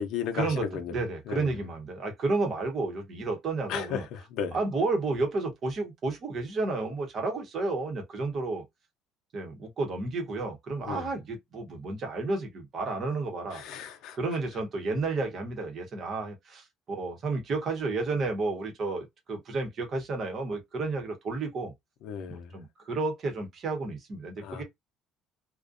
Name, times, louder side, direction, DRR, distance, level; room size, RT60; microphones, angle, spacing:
voice 1, 0.0-1.0 1.3-1.6 3.7-4.6 10.8-11.1 13.5-14.2 22.0-22.5 24.4-24.6, left 8 dB, 65° left, 0.5 m, -35 dB
voice 2, 0.9-4.0 4.5-8.6 9.3-13.6 14.1-21.7 22.3-24.6, right 3 dB, 35° right, 0.8 m, -31 dB
2.5 x 2.1 x 2.4 m
cardioid pair, 170°, 0 cm